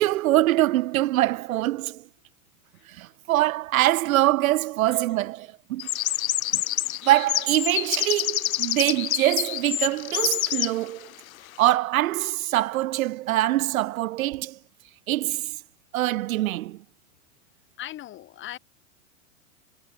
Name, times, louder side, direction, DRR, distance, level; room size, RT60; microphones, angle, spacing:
voice 1, 0.0-2.0 2.9-5.9 6.5-6.6 7.0-11.1 11.6-14.6 15.1-15.6 15.9-16.8, right 16 dB, 85° right, 0.6 m, -24 dB
sound 1, 5.8-10.7, left 14 dB, 85° left, 0.7 m, -27 dB
voice 2, 17.8-18.6, left 13 dB, 30° left, 3.5 m, -39 dB
hypercardioid pair, 135°, 41 cm